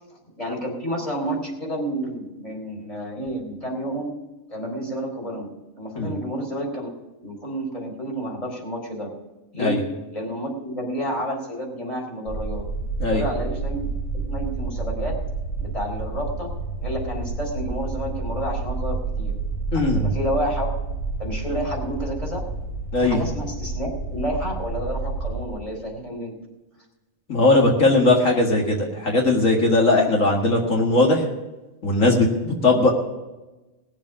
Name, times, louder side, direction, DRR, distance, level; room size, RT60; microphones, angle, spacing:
voice 1, 0.4-4.1 4.5-5.5 5.8-6.9 7.2-9.1 9.5-9.8 10.1-12.6 13.1-13.9 14.1-15.2 15.6-16.5 16.8-19.4 19.7-20.7 21.2-22.4 23.0-26.4, equal, 25° left, -1 dB, 4.2 m, -30 dB
sound 1, 12.3-25.5, right 3 dB, 55° left, 2.7 m, -29 dB
voice 2, 19.7-20.1 22.9-23.2 27.3-31.2 31.8-32.9, left 2 dB, 70° left, 0 dB, 2.3 m, -19 dB
19.5 x 7.4 x 6.0 m, 1.1 s
omnidirectional pair, 1.4 m